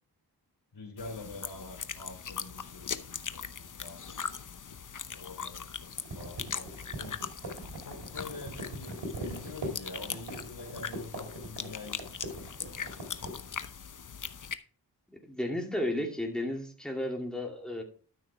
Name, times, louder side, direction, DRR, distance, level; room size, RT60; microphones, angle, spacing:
voice 1, 0.7-4.2 5.1-6.7 6.9-7.2 7.8-13.2, left 3 dB, 70° left, 2 dB, 3.3 m, -46 dB
sound 1, 1.0-14.5, left 6 dB, 45° left, 0.8 m, -40 dB
sound 2, 6.0-13.4, right 1 dB, 75° right, 3.1 m, -41 dB
voice 2, 15.1-17.8, left 1 dB, ahead, 0 dB, 2.6 m, -33 dB
12.5 x 6.2 x 3.4 m, 0.40 s
cardioid pair, 40°, 42 cm